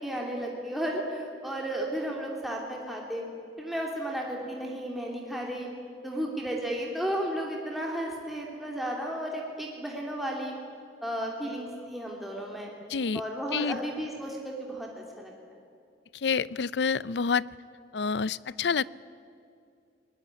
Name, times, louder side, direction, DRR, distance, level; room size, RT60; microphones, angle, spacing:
voice 1, 0.0-3.2 3.6-5.7 6.0-10.5 11.0-12.7 13.1-15.3, right 1 dB, ahead, -1 dB, 2.9 m, -33 dB
voice 2, 12.9-13.2 13.5-13.8 16.1-17.4 17.9-18.8, left 5 dB, 75° left, 20 dB, 0.5 m, -28 dB
22.5 x 19.5 x 9.7 m, 2.4 s
head